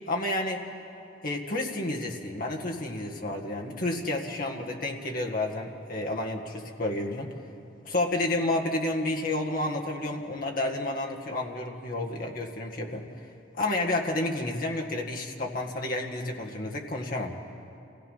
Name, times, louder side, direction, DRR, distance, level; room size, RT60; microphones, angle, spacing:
voice 1, 0.1-0.6 1.2-7.3 7.8-13.1 13.5-17.4, left 2 dB, 50° left, 0 dB, 1.8 m, -30 dB
28.0 x 16.5 x 5.6 m, 2.6 s
head